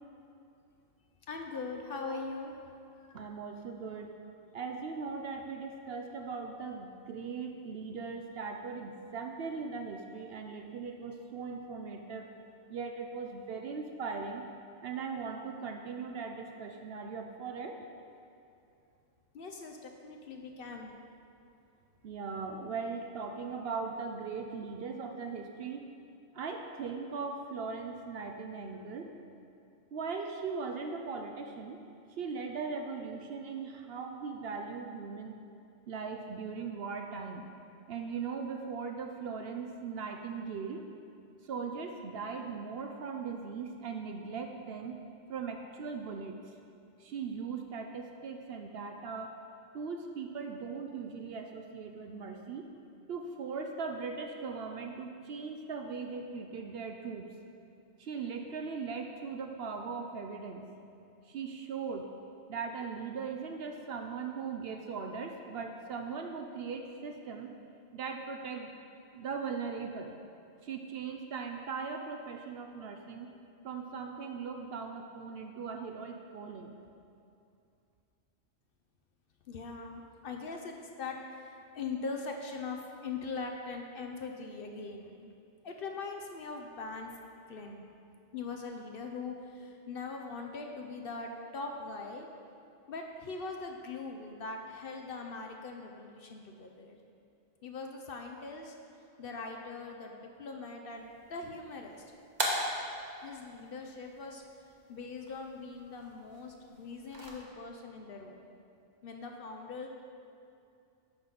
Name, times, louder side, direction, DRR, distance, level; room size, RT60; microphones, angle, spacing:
voice 1, 1.3-2.5 2.9-3.3 19.3-20.9 79.5-85.3 85.6-87.8 88.3-92.3 92.9-97.0 97.6-98.7 99.2-102.0 103.2-104.4 104.9-108.5 109.0-109.9, left 4 dB, 55° left, 3 dB, 0.7 m, -41 dB
voice 2, 3.1-4.1 4.5-12.3 12.7-14.4 14.8-17.8 22.0-25.9 26.3-29.1 29.9-31.8 32.2-35.3 35.9-37.4 37.9-40.8 41.4-45.0 45.3-46.5 47.0-49.4 49.7-52.7 53.1-57.3 58.0-60.7 61.3-62.1 62.5-67.5 67.9-68.7 69.1-70.1 70.6-73.3 73.6-76.8, right 5 dB, 65° right, 4 dB, 0.7 m, -39 dB
sound 1, 100.9-107.3, right 1 dB, 40° right, 1.1 m, -40 dB
10.0 x 3.9 x 5.8 m, 2.6 s
omnidirectional pair, 1.3 m